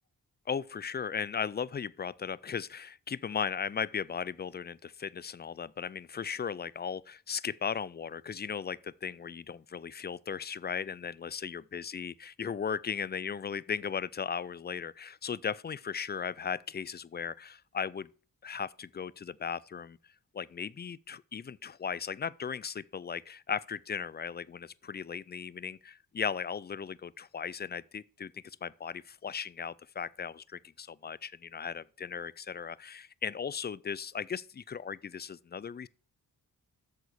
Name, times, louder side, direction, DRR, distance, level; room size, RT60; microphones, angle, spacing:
voice 1, 0.5-18.1 18.4-20.0 20.3-35.9, left 7 dB, 30° left, 0.4 m, -37 dB
8.2 x 6.9 x 4.6 m
cardioid pair, 60°, 37 cm